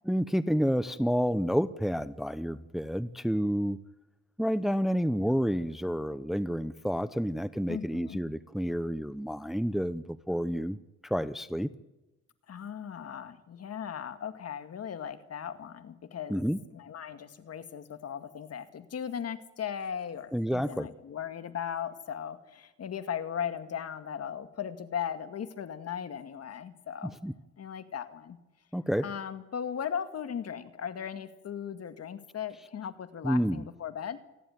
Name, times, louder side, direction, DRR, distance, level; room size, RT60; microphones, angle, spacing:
voice 1, 0.0-3.8 4.4-10.8 11.0-11.7 16.3-16.6 20.3-20.9 27.2-27.3 28.7-29.1 33.2-33.7, equal, ahead, 14 dB, 0.8 m, -29 dB
voice 2, 7.7-8.2 12.5-16.5 16.7-27.1 27.6-28.4 29.0-34.2, left 8 dB, 55° left, 10 dB, 2.0 m, -37 dB
28.5 x 11.0 x 9.5 m, 0.99 s
cardioid pair, 90°, 30 cm